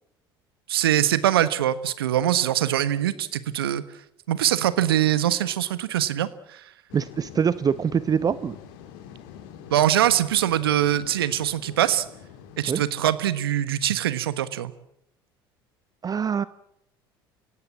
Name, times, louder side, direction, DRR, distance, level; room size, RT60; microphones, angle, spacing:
voice 1, 0.7-3.8 4.3-6.6 9.7-12.0 12.6-14.7, right 12 dB, 80° right, 15 dB, 1.3 m, -23 dB
sound 1, 6.9-12.8, left 9 dB, 70° left, 2.7 m, -45 dB
voice 2, 6.9-8.6 12.7-12.8 16.0-16.4, right 7 dB, 30° right, 16 dB, 0.8 m, -24 dB
28.0 x 17.0 x 7.3 m, 0.75 s
hypercardioid pair, 65°, 12 cm